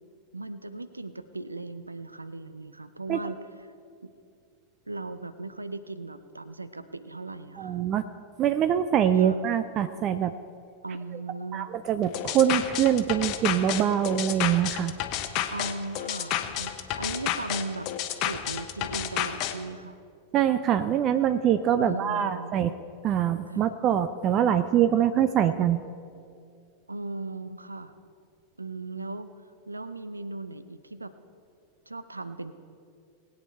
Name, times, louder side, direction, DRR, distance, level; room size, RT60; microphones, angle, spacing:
voice 1, 0.3-3.4 3.6-3.7 4.0-4.1 4.9-7.8 9.2-9.3 10.8-11.7 15.5-17.9 18.2-20.0 21.8-22.6 23.5-23.6 26.9-27.9 28.6-29.3 29.7-31.1 31.9-32.5, right 2 dB, 80° right, 13 dB, 0.6 m, -37 dB
voice 2, 7.6-8.0 8.4-10.3 11.5-14.9 20.3-22.7 23.0-25.8, right 9 dB, 35° right, 11 dB, 0.5 m, -24 dB
sound 1, 12.1-19.5, left 11 dB, 40° left, 0.9 m, -30 dB
20.5 x 8.8 x 4.3 m, 2.4 s
figure-of-eight pair, 90°, 0 cm